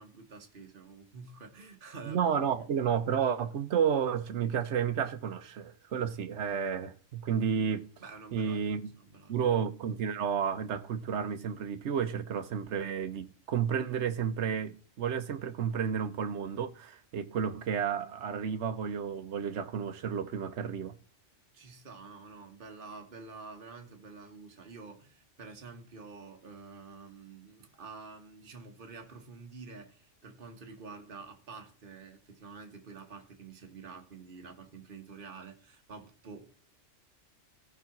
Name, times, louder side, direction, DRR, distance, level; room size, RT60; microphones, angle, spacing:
voice 1, 0.0-2.2 8.0-9.5 21.5-36.6, right 4 dB, 45° right, 1.5 m, -48 dB
voice 2, 2.1-7.9 8.3-8.8 9.3-20.9, right 7 dB, 65° right, 1.1 m, -31 dB
14.0 x 4.8 x 6.0 m
omnidirectional pair, 1.3 m